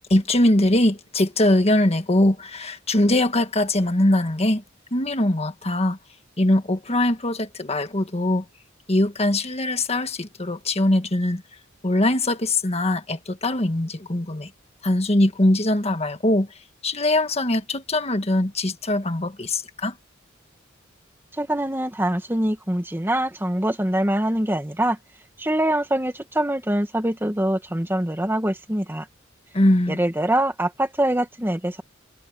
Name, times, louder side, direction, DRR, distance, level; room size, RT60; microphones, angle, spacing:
voice 1, 0.1-4.6 4.9-6.0 6.4-8.4 8.9-11.4 11.8-14.5 14.8-16.5 16.8-19.9 29.5-30.0, left 1 dB, 30° left, 1.6 m, -21 dB
voice 2, 21.4-25.0 25.4-29.0 29.9-31.8, right 1 dB, 10° right, 1.6 m, -24 dB
head